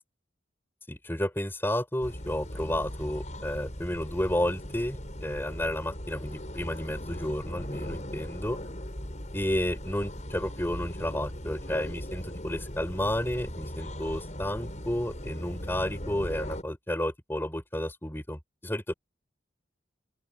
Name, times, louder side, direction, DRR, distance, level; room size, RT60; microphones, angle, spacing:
voice 1, 0.9-8.6 9.3-18.9, left 1 dB, 10° left, 4.5 m, -31 dB
sound 1, 2.0-16.6, equal, 40° left, 6.5 m, -39 dB
open air
head